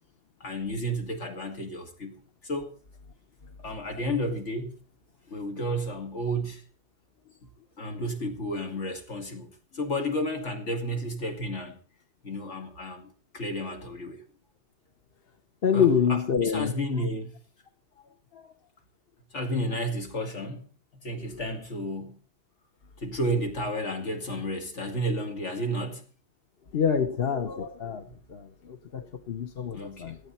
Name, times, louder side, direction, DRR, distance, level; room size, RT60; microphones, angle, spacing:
voice 1, 0.4-2.7 3.6-4.7 5.3-6.6 7.8-11.8 12.2-14.2 15.7-17.4 19.3-20.6 21.0-22.2 23.0-26.0 29.6-30.1, equal, 85° left, 3 dB, 2.7 m, -32 dB
voice 2, 15.6-16.7 18.3-18.4 26.7-30.2, left 7 dB, 60° left, 9 dB, 1.1 m, -26 dB
17.5 x 13.5 x 4.3 m, 0.38 s
omnidirectional pair, 1.2 m